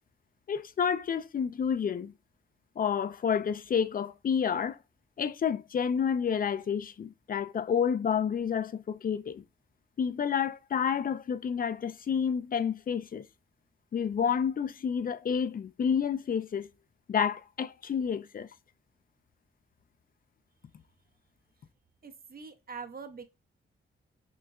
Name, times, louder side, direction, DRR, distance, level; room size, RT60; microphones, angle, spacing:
voice 1, 0.5-2.1 2.8-4.8 5.2-9.4 10.0-13.2 13.9-16.7 17.1-18.5, left 7 dB, 45° left, 0.4 m, -29 dB
voice 2, 22.0-23.2, right 5 dB, 45° right, 0.6 m, -43 dB
6.1 x 2.2 x 2.3 m
cardioid pair, 75°, 21 cm